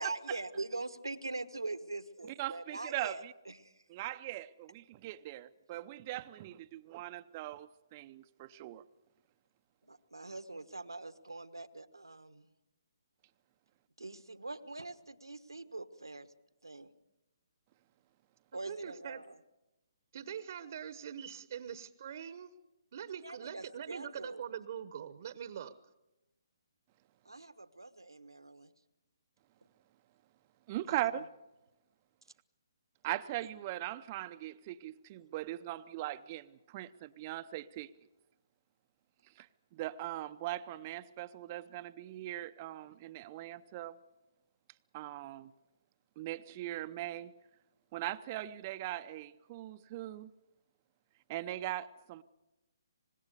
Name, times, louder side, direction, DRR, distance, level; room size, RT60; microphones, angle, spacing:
voice 1, 0.0-3.7 9.8-12.5 14.0-16.3 16.6-16.9 18.5-19.4 23.2-24.4 27.2-28.7 30.9-31.0, right 2 dB, 90° right, 1.3 m, -43 dB
voice 2, 2.4-3.3 3.9-8.8 30.7-31.3 33.0-37.9 39.4-39.5 39.7-44.0 44.9-45.5 46.2-47.3 47.9-50.3 51.3-52.2, right 15 dB, 35° right, 0.7 m, -40 dB
voice 3, 18.5-19.2 20.1-22.5 22.9-25.8, right 8 dB, 50° right, 1.0 m, -43 dB
25.0 x 20.5 x 6.8 m
figure-of-eight pair, 140°, 2 cm